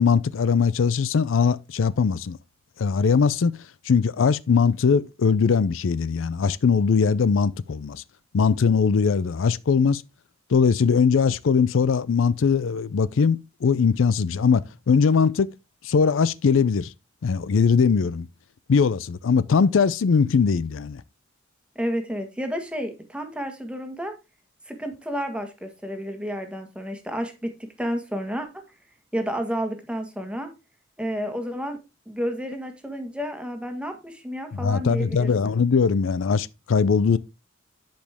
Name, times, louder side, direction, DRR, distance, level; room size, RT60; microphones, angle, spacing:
voice 1, 0.0-2.4 2.8-3.5 3.9-8.0 8.3-10.0 10.5-15.5 15.8-16.9 17.2-18.3 18.7-21.0 34.5-37.2, left 5 dB, 85° left, 0.4 m, -21 dB
voice 2, 21.7-24.1 24.7-28.5 29.1-30.5 31.0-31.8 32.1-35.5, equal, 5° right, 1.4 m, -31 dB
10.5 x 5.2 x 3.5 m
head